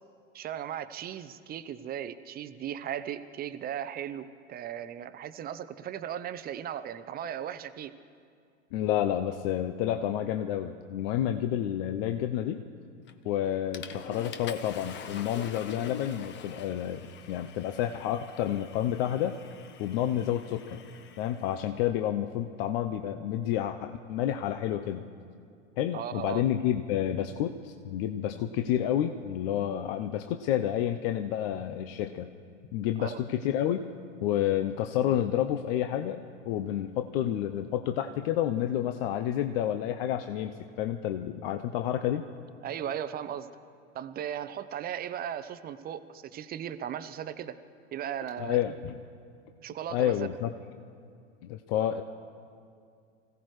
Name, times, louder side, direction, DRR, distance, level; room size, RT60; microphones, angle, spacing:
voice 1, 0.3-7.9 25.9-26.5 33.0-33.2 42.6-43.5 43.9-47.6 47.9-48.6 49.6-50.2, right 9 dB, 25° right, 13 dB, 0.7 m, -37 dB
voice 2, 8.7-12.6 13.2-17.0 17.3-19.4 19.8-20.8 21.2-25.0 25.8-32.3 32.7-33.9 34.2-42.2 48.4-48.9 49.9-50.5 51.4-52.0, left 11 dB, 50° left, 7 dB, 0.8 m, -29 dB
Water / Toilet flush, 13.1-13.3 13.7-21.6, left 7 dB, 30° left, 1.0 m, -45 dB
25.5 x 16.5 x 3.2 m, 2.3 s
hypercardioid pair, 105°, 38 cm